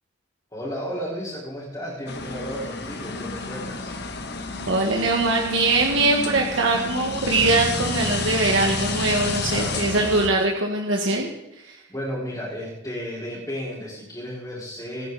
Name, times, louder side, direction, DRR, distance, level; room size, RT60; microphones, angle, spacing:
voice 1, 0.5-3.9 9.1-9.8 11.6-15.1, equal, 15° left, -9 dB, 4.8 m, -33 dB
sound 1, 2.1-10.3, left 3 dB, 55° left, 1.5 m, -30 dB
voice 2, 4.7-11.3 11.6-11.8, right 2 dB, 70° right, 0 dB, 1.7 m, -22 dB
26.5 x 10.0 x 4.1 m, 0.90 s
head